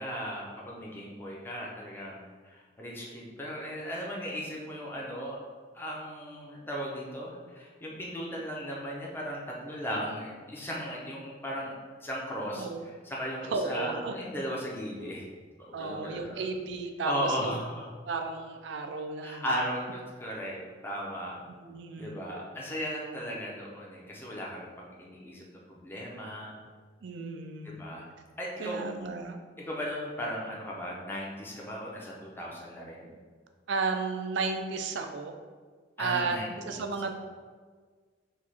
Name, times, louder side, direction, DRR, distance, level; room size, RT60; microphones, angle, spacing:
voice 1, 0.0-5.4 5.7-11.7 12.0-15.2 15.6-16.5 17.0-17.9 19.2-21.4 22.0-26.6 27.6-28.0 28.4-28.8 29.6-33.1 36.0-36.9, equal, 10° left, -4 dB, 0.7 m, -36 dB
voice 2, 13.5-14.1 15.7-17.6 18.1-19.4 21.6-22.2 27.0-27.9 28.6-29.4 33.7-35.3 36.0-36.4 36.6-37.1, right 4 dB, 70° right, 6 dB, 0.4 m, -33 dB
4.8 x 2.4 x 4.2 m, 1.5 s
head